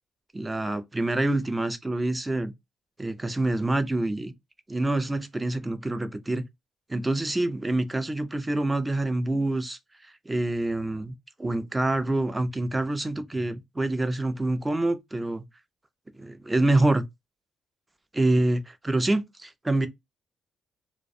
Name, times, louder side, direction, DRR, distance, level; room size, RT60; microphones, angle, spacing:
voice 1, 0.3-2.5 3.0-4.3 4.7-6.4 6.9-9.8 10.3-15.4 16.2-17.0 18.1-19.9, right 2 dB, 15° right, 0.4 m, -26 dB
2.3 x 2.1 x 2.6 m
cardioid pair, 90°, 0 cm